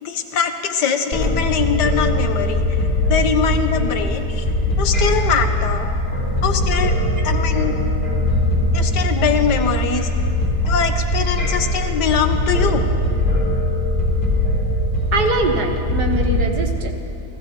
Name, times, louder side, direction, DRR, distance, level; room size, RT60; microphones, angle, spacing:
voice 1, 0.0-2.8 3.1-4.4 4.8-5.9 6.4-7.0 7.2-7.8 8.7-10.1 10.7-12.8, left 7 dB, 85° left, 7 dB, 1.6 m, -22 dB
sound 1, 1.1-16.4, left 1 dB, 35° left, 3.7 m, -20 dB
voice 2, 15.1-17.1, right 3 dB, 70° right, 3 dB, 1.9 m, -22 dB
29.5 x 16.0 x 3.0 m, 2.7 s
omnidirectional pair, 1.8 m